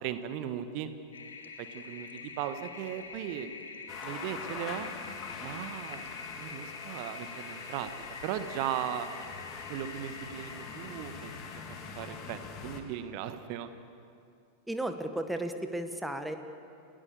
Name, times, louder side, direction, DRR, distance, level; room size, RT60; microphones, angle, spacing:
voice 1, 0.0-0.9 1.6-3.5 4.0-4.9 5.4-6.1 6.4-7.9 8.2-9.1 9.7-11.3 11.9-13.7, right 10 dB, 45° right, 10 dB, 1.6 m, -37 dB
Toilet flush, 1.1-12.7, left 4 dB, 70° left, 2.1 m, -46 dB
sound 1, 3.9-12.8, left 5 dB, 35° left, 2.8 m, -44 dB
voice 2, 14.7-16.4, right 1 dB, 5° right, 7 dB, 1.6 m, -34 dB
29.5 x 18.0 x 7.0 m, 2.4 s
figure-of-eight pair, 90°, 0 cm